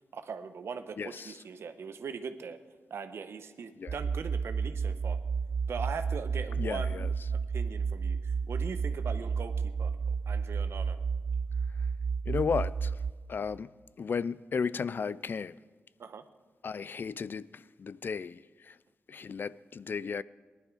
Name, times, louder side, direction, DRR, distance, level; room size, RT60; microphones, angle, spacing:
voice 1, 0.1-2.6 2.9-5.2 5.7-9.9 10.3-11.0 16.0-16.2, right 5 dB, 75° right, 0.8 m, -41 dB
voice 2, 1.0-1.4 3.8-4.0 6.6-7.1 12.3-13.0 13.3-13.7 14.0-15.6 16.6-18.8 19.1-20.2, left 5 dB, 50° left, 0.3 m, -34 dB
sound 1, 3.9-13.1, right 5 dB, 55° right, 0.4 m, -31 dB
19.0 x 11.5 x 4.8 m
wide cardioid pair, 95°, 4 cm